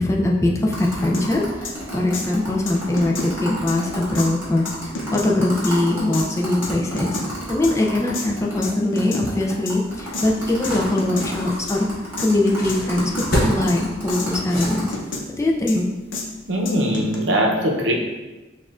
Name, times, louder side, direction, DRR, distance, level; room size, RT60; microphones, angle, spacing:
voice 1, 0.0-4.7 5.1-7.2 7.5-11.9 12.2-14.9 15.4-15.9, left 1 dB, 15° left, -1 dB, 0.4 m, -21 dB
sound 1, 0.7-8.7 9.0-9.1 9.3-14.9, equal, 15° right, 1.4 m, -32 dB
sound 2, 1.1-1.3 1.6-1.7 2.1-2.3 2.7-3.3 3.7-3.8 4.2-4.3 4.7-5.3 5.6-5.7 6.1-6.3 6.6-7.3 7.6-7.7 8.1-8.3 8.6-9.3 9.7-9.8 10.1-10.3 10.6-10.7 11.0-11.3 11.7-11.8 12.2-12.3 12.7-13.3 13.7-13.8 14.1-14.3 14.6-15.2 15.7-15.8 16.1-16.2 16.7-17.2, left 2 dB, 80° left, 0.7 m, -29 dB
sound 3, 9.9-15.2, equal, 50° left, 0.9 m, -30 dB
voice 2, 16.5-17.9, equal, 70° right, 0 dB, 0.7 m, -21 dB
6.1 x 2.4 x 2.4 m, 1.1 s
head